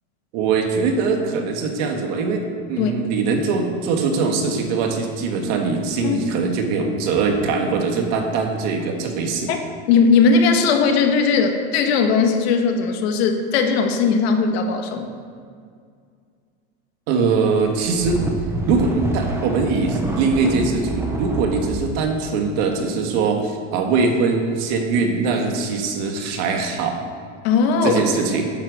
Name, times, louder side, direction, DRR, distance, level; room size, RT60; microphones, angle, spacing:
voice 1, 0.3-2.4 2.7-9.5 17.1-18.2 18.7-27.0 27.8-28.5, right 4 dB, 55° right, 3 dB, 2.0 m, -22 dB
voice 2, 9.9-15.1 27.4-28.0, left 5 dB, 75° left, 5 dB, 1.7 m, -18 dB
sound 1, 17.7-21.9, right 2 dB, 10° right, 0.9 m, -27 dB
10.5 x 9.2 x 6.3 m, 2.2 s
cardioid pair, 165°, 32 cm